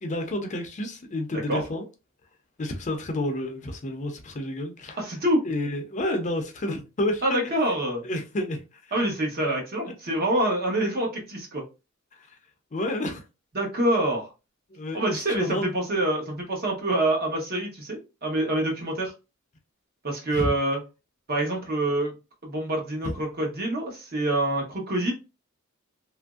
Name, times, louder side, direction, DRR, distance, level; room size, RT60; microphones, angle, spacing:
voice 1, 0.0-1.8 2.6-5.0 5.4-7.5 8.0-8.9 12.1-12.4 12.7-13.2 14.7-15.7 20.3-20.5 23.0-23.1, left 1 dB, 35° left, 0.5 m, -30 dB
voice 2, 5.0-5.4 7.2-8.0 8.9-11.6 13.5-14.3 14.9-19.1 20.0-20.8 21.3-22.1 22.4-25.1, right 1 dB, 45° right, 1.0 m, -26 dB
3.0 x 2.5 x 2.3 m
head